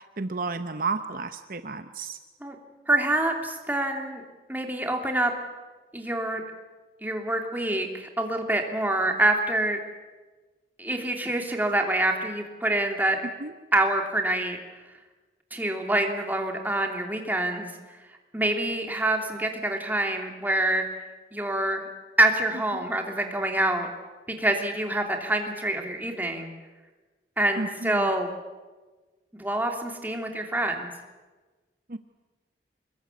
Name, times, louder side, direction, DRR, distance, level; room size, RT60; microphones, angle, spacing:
voice 1, 0.2-2.2 13.4-13.5 27.6-28.1 31.9-32.0, right 3 dB, 50° right, 9 dB, 0.9 m, -31 dB
voice 2, 2.9-4.2 4.5-5.3 5.9-6.4 7.0-9.8 10.8-13.2 13.7-14.6 15.5-17.7 18.3-20.8 21.3-21.9 22.2-23.9 24.3-26.5 27.4-28.3 29.4-30.9, right 1 dB, 10° right, 3 dB, 2.9 m, -26 dB
25.0 x 22.0 x 8.4 m, 1.3 s
head